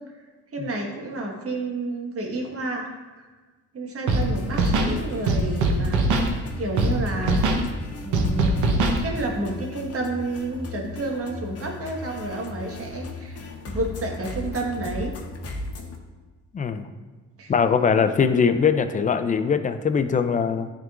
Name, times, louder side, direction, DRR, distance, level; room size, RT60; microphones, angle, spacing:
voice 1, 0.5-3.3 3.7-7.4 8.0-15.2 17.4-17.5, right 2 dB, 50° right, 0 dB, 1.4 m, -30 dB
Scratching (performance technique), 4.1-4.2 4.5-4.9 5.3-6.3 6.8-6.9 7.2-7.6 8.1-9.0, right 3 dB, 75° right, 0.9 m, -21 dB
sound 1, 4.2-16.0, left 2 dB, 55° left, 0.9 m, -37 dB
voice 2, 16.5-16.9 17.5-20.7, left 6 dB, 25° left, 9 dB, 0.4 m, -21 dB
10.5 x 3.6 x 2.4 m, 1.3 s
cardioid pair, 90°, 30 cm